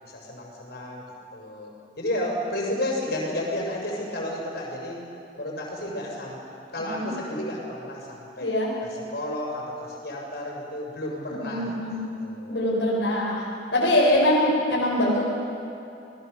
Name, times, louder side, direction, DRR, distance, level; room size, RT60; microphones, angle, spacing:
voice 1, 0.0-1.1 1.3-1.7 2.0-5.0 5.4-6.5 6.7-8.5 8.8-12.6, left 1 dB, 60° left, -2 dB, 6.5 m, -32 dB
voice 2, 8.4-8.7 11.3-12.0 12.5-15.2, left 1 dB, 80° left, -5 dB, 4.9 m, -23 dB
27.5 x 21.0 x 6.9 m, 2.8 s
head